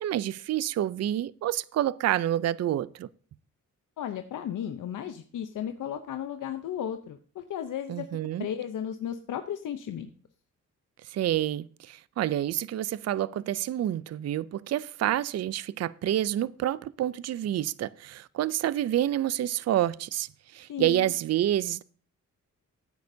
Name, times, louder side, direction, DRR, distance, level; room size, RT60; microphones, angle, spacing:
voice 1, 0.0-3.1 7.9-8.5 11.0-21.8, right 12 dB, 55° right, 0.4 m, -28 dB
voice 2, 4.0-8.1 8.4-10.1 20.7-21.1, left 9 dB, 75° left, 0.8 m, -34 dB
15.0 x 9.5 x 2.7 m
cardioid pair, 95°, 31 cm